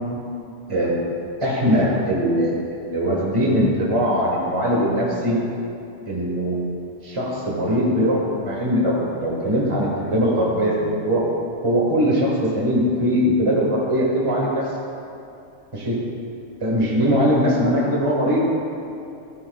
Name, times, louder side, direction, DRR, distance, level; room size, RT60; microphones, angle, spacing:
voice 1, 1.4-5.4 6.1-6.6 7.0-11.2 11.6-14.6 15.7-16.0 16.6-18.4, equal, 25° right, -4 dB, 1.7 m, -21 dB
14.5 x 14.0 x 2.4 m, 2.6 s
omnidirectional pair, 1.2 m